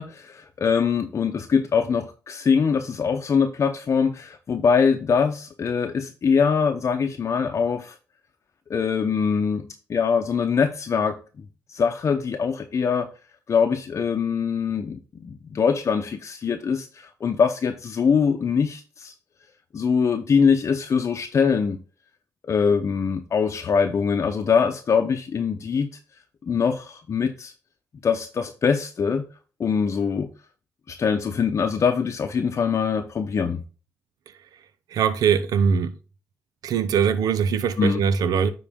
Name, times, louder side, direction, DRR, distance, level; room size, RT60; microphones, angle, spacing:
voice 1, 0.0-7.9 8.7-9.6 9.9-11.2 11.7-13.1 13.5-19.1 19.7-21.8 22.4-25.9 26.5-27.5 28.0-29.3 29.6-30.3 30.9-33.6 37.8-38.0, left 6 dB, 50° left, 0.7 m, -23 dB
voice 2, 34.9-35.9 36.6-38.5, right 7 dB, 80° right, 0.7 m, -21 dB
9.9 x 3.9 x 3.6 m
cardioid pair, 80°, 6 cm